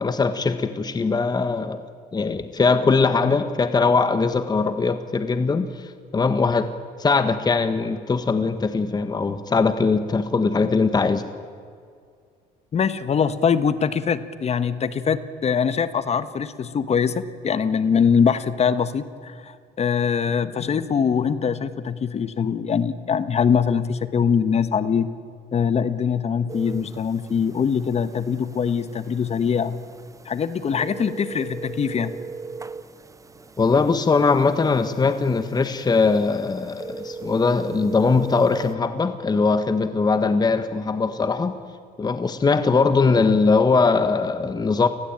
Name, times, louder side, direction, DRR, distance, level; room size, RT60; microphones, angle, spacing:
voice 1, 0.0-1.8 2.1-6.7 7.0-11.2 33.6-41.6 42.0-44.9, left 4 dB, 25° left, 10 dB, 1.5 m, -21 dB
voice 2, 12.7-25.1 25.5-29.8 30.2-32.1, left 6 dB, 40° left, 13 dB, 1.3 m, -23 dB
sound 1, 26.5-38.8, right 4 dB, 20° right, 1.0 m, -39 dB
29.5 x 20.0 x 8.9 m, 2.2 s
cardioid pair, 110°, 17 cm